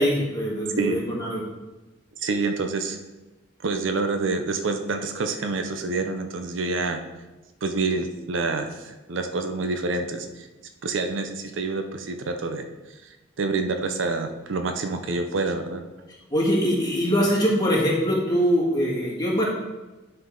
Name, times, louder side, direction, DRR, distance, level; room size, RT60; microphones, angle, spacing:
voice 1, 0.0-1.4 16.3-19.4, equal, 20° left, -5 dB, 1.9 m, -23 dB
voice 2, 2.2-3.0 3.6-7.0 7.6-10.5 10.8-12.6 13.4-15.8, right 3 dB, 70° right, 6 dB, 0.6 m, -27 dB
9.4 x 4.6 x 3.8 m, 1.1 s
head